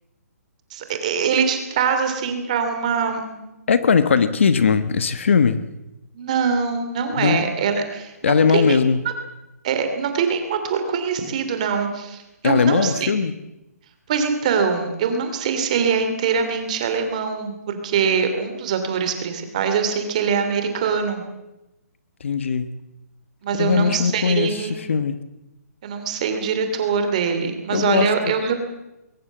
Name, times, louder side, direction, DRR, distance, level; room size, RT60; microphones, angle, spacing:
voice 1, 0.7-3.5 6.1-8.8 9.6-13.1 14.1-21.2 23.4-24.7 25.8-28.6, right 6 dB, 25° right, 7 dB, 2.8 m, -23 dB
voice 2, 3.7-5.6 7.1-7.4 8.2-9.0 12.4-13.3 22.2-22.7 23.6-25.2 27.7-28.3, left 6 dB, 45° left, 12 dB, 1.2 m, -19 dB
21.5 x 19.0 x 7.3 m, 0.95 s
hypercardioid pair, 175°, 9 cm